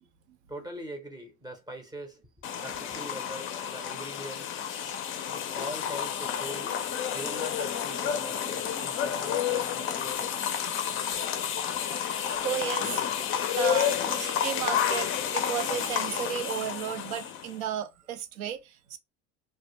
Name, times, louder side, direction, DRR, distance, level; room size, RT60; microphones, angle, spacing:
voice 1, 0.5-2.2 2.6-4.6 5.3-10.4, equal, 10° right, 0.6 m, -42 dB
sound 1, 2.4-17.6, left 9 dB, 35° left, 0.4 m, -30 dB
voice 2, 12.4-13.0 13.5-19.0, right 9 dB, 85° right, 0.6 m, -34 dB
2.1 x 2.1 x 2.8 m
hypercardioid pair, 90°, 41 cm